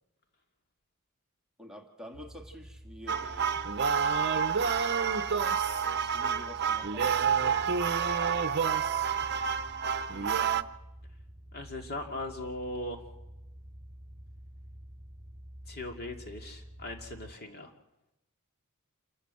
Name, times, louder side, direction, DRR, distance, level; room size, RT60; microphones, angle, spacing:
voice 1, 1.6-4.1 5.9-7.7, equal, 5° right, 1 dB, 1.9 m, -49 dB
sound 1, 2.1-17.3, equal, 30° right, 4.5 m, -48 dB
sound 2, 3.1-10.6, right 6 dB, 50° right, 0.8 m, -28 dB
voice 2, 11.5-13.0 15.7-17.7, left 2 dB, 45° left, 3 dB, 2.5 m, -39 dB
27.5 x 14.0 x 7.7 m, 0.96 s
head